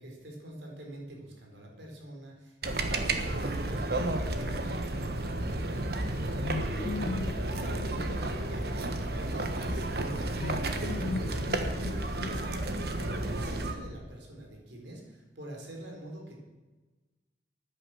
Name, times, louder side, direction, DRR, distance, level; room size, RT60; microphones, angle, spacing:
voice 1, 0.0-6.5 6.9-7.4 7.7-16.4, right 1 dB, 90° right, 1 dB, 4.2 m, -45 dB
sound 1, 2.6-13.7, right 2 dB, 60° right, 1.3 m, -32 dB
sound 2, 6.4-9.0 10.4-12.9, left 3 dB, 40° left, 0.5 m, -38 dB
14.5 x 10.0 x 6.5 m, 1.2 s
head